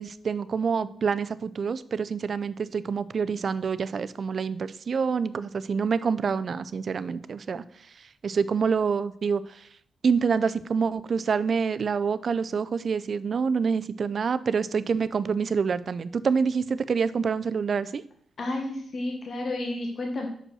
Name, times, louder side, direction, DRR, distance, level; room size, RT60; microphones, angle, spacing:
voice 1, 0.0-7.6 8.0-9.7 10.0-18.0, right 5 dB, 45° right, 15 dB, 0.4 m, -27 dB
voice 2, 18.4-20.3, left 2 dB, 45° left, 2 dB, 1.2 m, -31 dB
6.3 x 5.2 x 6.1 m, 0.63 s
wide cardioid pair, 155°, 0 cm